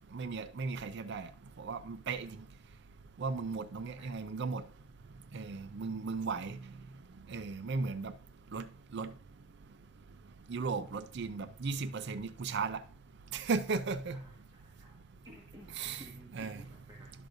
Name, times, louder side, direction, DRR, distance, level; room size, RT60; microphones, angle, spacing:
voice 1, 0.1-1.3 1.6-2.3 3.2-4.6 5.3-6.6 7.3-8.1 8.5-8.7 8.9-9.1 10.5-12.8 13.3-14.2 15.7-16.0 16.3-16.6, right 4 dB, 55° right, 0.4 m, -36 dB
voice 2, 14.1-15.0 15.2-17.1, equal, 20° right, 1.5 m, -55 dB
11.5 x 6.3 x 2.6 m
head